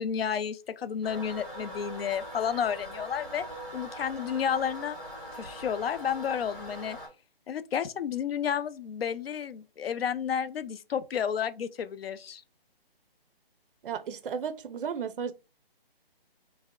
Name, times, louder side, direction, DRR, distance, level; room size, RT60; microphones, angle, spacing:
voice 1, 0.0-3.5 3.7-5.0 5.3-7.0 7.5-12.4, left 8 dB, 75° left, 0.5 m, -31 dB
Toilet flush, 1.0-7.1, equal, 5° right, 0.6 m, -42 dB
voice 2, 13.8-15.3, right 7 dB, 65° right, 0.4 m, -34 dB
3.3 x 2.1 x 3.6 m
hypercardioid pair, 175°, 30 cm